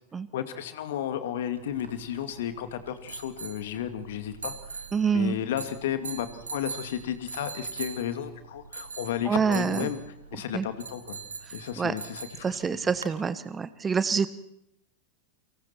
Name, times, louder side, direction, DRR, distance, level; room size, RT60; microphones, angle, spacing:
voice 1, 0.3-4.9 5.1-10.0 10.3-11.2 11.5-12.8, left 10 dB, 55° left, 9 dB, 2.5 m, -33 dB
sound 1, 1.6-13.2, right 5 dB, 75° right, 2.0 m, -42 dB
voice 2, 4.9-5.4 9.2-9.9 10.5-10.7 11.8-11.9 12.4-14.3, right 6 dB, 15° right, 15 dB, 1.2 m, -26 dB
29.5 x 25.5 x 4.5 m, 0.79 s
figure-of-eight pair, 90°, 0 cm